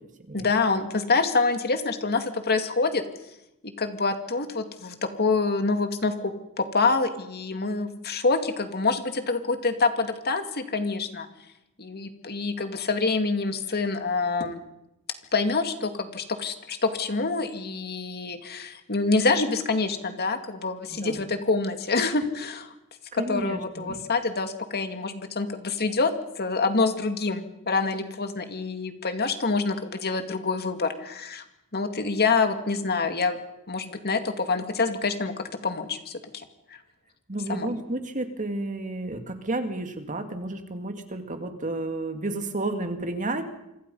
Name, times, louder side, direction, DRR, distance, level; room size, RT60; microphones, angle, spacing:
voice 1, 0.3-3.0 3.6-11.3 11.8-14.6 15.3-22.7 23.1-31.4 31.7-33.4 33.7-35.3 35.6-36.2 36.7-36.8 37.5-37.7, left 3 dB, 45° left, 7 dB, 2.3 m, -26 dB
voice 2, 20.9-21.2 23.1-24.0 37.3-43.4, right 2 dB, 35° right, 6 dB, 2.3 m, -31 dB
27.5 x 25.5 x 5.6 m, 0.86 s
head